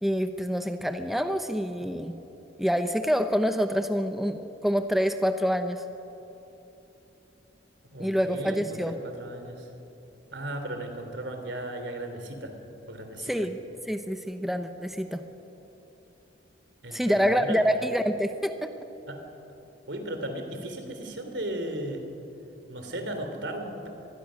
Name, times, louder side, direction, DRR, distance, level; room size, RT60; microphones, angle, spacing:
voice 1, 0.0-2.1 2.6-5.8 8.0-9.0 13.2-13.6 13.9-15.2 16.9-18.7, equal, ahead, 7 dB, 0.8 m, -26 dB
voice 2, 7.8-9.7 10.3-12.5 12.9-13.3 16.8-17.6 19.1-19.2 19.9-22.0 22.7-23.9, right 1 dB, 75° right, 6 dB, 3.1 m, -36 dB
25.0 x 20.0 x 6.4 m, 3.0 s
head